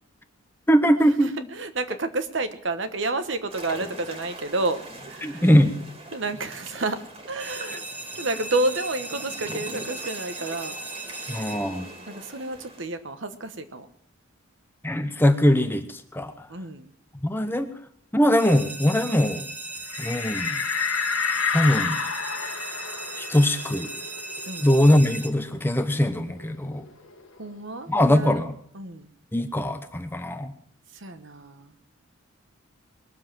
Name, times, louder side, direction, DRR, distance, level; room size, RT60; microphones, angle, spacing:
voice 1, 0.7-1.3 5.2-5.8 11.3-11.9 14.8-16.5 17.2-17.7 18.1-19.5 20.0-20.6 21.5-22.0 23.2-23.9 24.6-26.8 27.9-28.6 29.3-30.5, equal, 10° left, 8 dB, 0.9 m, -21 dB
voice 2, 1.2-4.8 5.1-5.4 6.1-7.0 7.3-7.8 8.2-10.8 12.1-13.9 16.5-16.9 24.4-24.7 27.4-28.4 28.7-29.1 30.9-31.7, right 2 dB, 60° right, 10 dB, 1.2 m, -30 dB
sound 1, 3.5-12.8, right 1 dB, 30° right, 2.3 m, -42 dB
sound 2, 7.4-12.3 18.4-25.3, right 2 dB, 10° right, 1.1 m, -37 dB
sound 3, 19.9-25.1 25.5-25.6 25.9-27.6, left 6 dB, 75° left, 1.4 m, -30 dB
21.0 x 7.4 x 7.5 m, 0.65 s
head